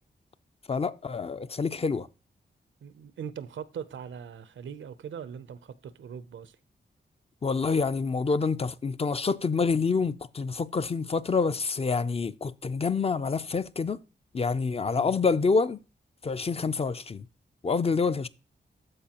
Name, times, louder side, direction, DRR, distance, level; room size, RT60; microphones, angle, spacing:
voice 1, 0.7-2.1 7.4-14.0 14.3-15.8 16.2-17.3 17.6-18.3, left 4 dB, 30° left, 0.4 m, -27 dB
voice 2, 2.8-6.6 14.9-15.1, right 7 dB, 90° right, 0.6 m, -41 dB
13.0 x 4.7 x 2.9 m
wide cardioid pair, 90°, 19 cm